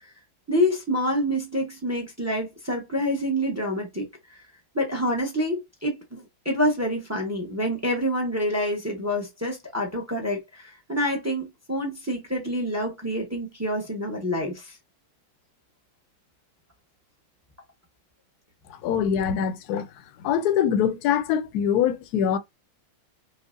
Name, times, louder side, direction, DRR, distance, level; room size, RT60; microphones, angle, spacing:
voice 1, 0.5-4.4 4.7-14.8, equal, 20° right, 0.4 m, -27 dB
voice 2, 18.7-19.9 20.2-22.4, left 8 dB, 70° left, 1.0 m, -23 dB
5.3 x 2.1 x 2.5 m
omnidirectional pair, 2.0 m